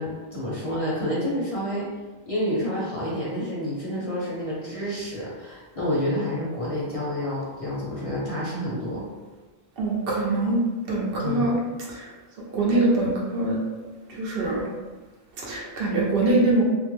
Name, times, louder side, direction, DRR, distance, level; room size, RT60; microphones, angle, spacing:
voice 1, 0.0-1.9 2.3-9.1 11.2-11.5, equal, 40° left, -7 dB, 0.6 m, -29 dB
voice 2, 9.8-10.6 10.9-11.6 11.9-12.0 12.5-13.6 14.2-14.7 15.4-16.6, right 2 dB, 70° right, -3 dB, 0.8 m, -23 dB
2.4 x 2.0 x 3.0 m, 1.3 s
omnidirectional pair, 1.0 m